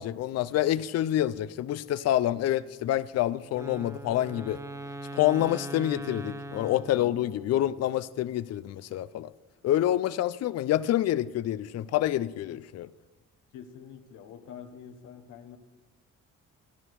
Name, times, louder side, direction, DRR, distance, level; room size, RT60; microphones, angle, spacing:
voice 1, 0.0-4.6 5.1-9.3 9.6-12.9, left 13 dB, 55° left, 0.5 m, -27 dB
Wind instrument woodwind instrument, 3.5-7.7, right 1 dB, 10° right, 0.6 m, -41 dB
voice 2, 13.5-15.6, left 8 dB, 85° left, 1.2 m, -46 dB
12.5 x 11.0 x 4.7 m
cardioid pair, 90°, 30 cm